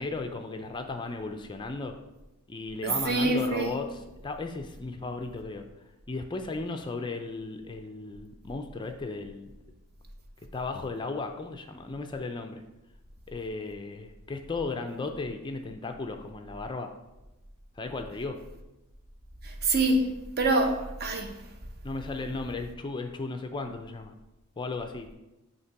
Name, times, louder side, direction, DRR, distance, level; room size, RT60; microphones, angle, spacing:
voice 1, 0.0-2.0 2.5-3.9 4.2-5.7 6.1-9.5 10.5-12.6 13.3-16.9 17.8-18.4 21.8-24.1 24.6-25.1, left 3 dB, 20° left, 0.4 m, -35 dB
voice 2, 2.8-3.7 19.4-20.1 20.4-21.4, right 2 dB, 45° right, 0.8 m, -25 dB
8.3 x 2.9 x 4.6 m
head